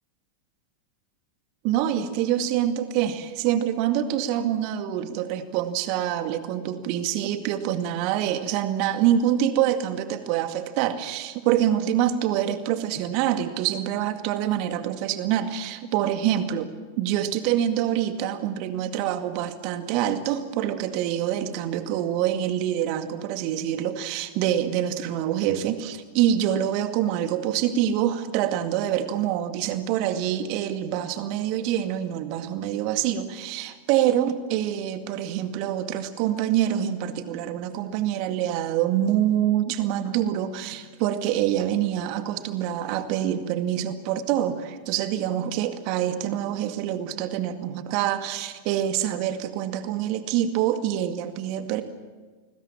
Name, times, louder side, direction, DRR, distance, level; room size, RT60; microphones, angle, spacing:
voice 1, 1.6-16.7 17.0-51.8, right 11 dB, 45° right, 8 dB, 2.1 m, -26 dB
29.0 x 21.0 x 7.4 m, 1.4 s
figure-of-eight pair, 90°, 0 cm